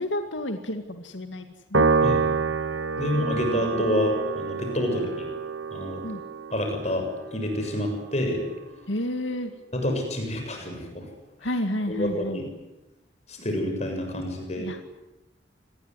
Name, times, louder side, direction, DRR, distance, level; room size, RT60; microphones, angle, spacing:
voice 1, 0.0-1.4 1.7-2.0 3.0-3.8 4.8-5.0 6.0-6.2 8.9-9.5 11.4-12.4 14.6-14.8, left 1 dB, 85° left, 6 dB, 2.2 m, -31 dB
Piano, 1.7-8.3, right 4 dB, 90° right, 1.3 m, -27 dB
voice 2, 3.0-5.3 5.7-6.0 6.5-8.4 9.7-11.0 11.9-12.5 13.3-14.7, left 1 dB, 35° left, 4 dB, 7.2 m, -28 dB
26.0 x 20.5 x 9.8 m, 0.98 s
head